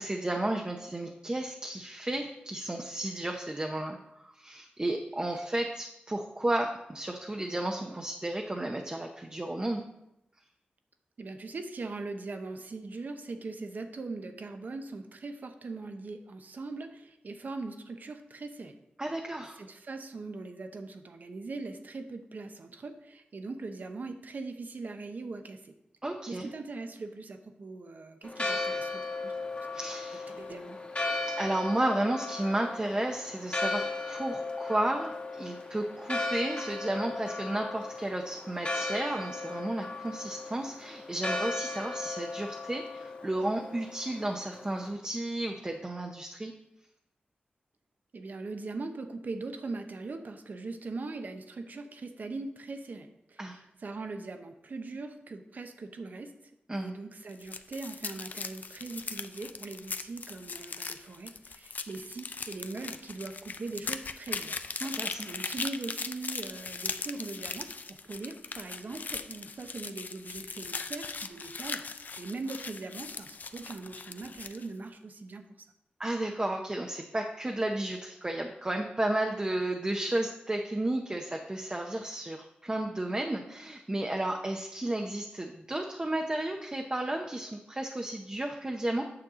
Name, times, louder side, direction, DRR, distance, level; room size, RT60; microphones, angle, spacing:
voice 1, 0.0-9.8 19.0-19.6 26.0-26.5 29.7-30.4 31.3-46.5 53.4-53.6 56.7-56.9 64.8-65.3 76.0-89.1, right 1 dB, 25° right, 2 dB, 0.8 m, -33 dB
voice 2, 11.2-18.8 19.6-25.7 26.3-29.3 30.3-30.8 48.1-56.3 56.7-64.6 65.3-71.9 72.2-75.4, right 3 dB, 60° right, 7 dB, 0.9 m, -41 dB
Church bell, 28.2-44.9, left 2 dB, 35° left, 1.6 m, -36 dB
sound 1, 57.3-74.7, left 4 dB, 55° left, 0.4 m, -39 dB
8.8 x 6.5 x 3.8 m, 0.85 s
cardioid pair, 70°, 3 cm